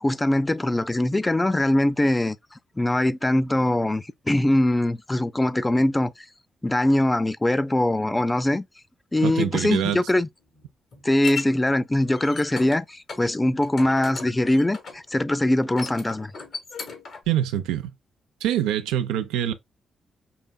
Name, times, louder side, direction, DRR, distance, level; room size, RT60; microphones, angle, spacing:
voice 1, 0.0-2.4 2.8-6.1 6.6-8.7 9.1-10.3 11.0-16.3, left 1 dB, 20° left, 0.4 m, -22 dB
voice 2, 9.2-10.0 17.3-17.9 18.4-19.5, right 11 dB, 85° right, 0.4 m, -25 dB
sound 1, 10.4-11.4 12.0-12.8 13.1-13.2 13.6-15.1 15.6-17.3, left 5 dB, 65° left, 1.5 m, -36 dB
5.6 x 2.6 x 2.2 m
hypercardioid pair, 45°, 0 cm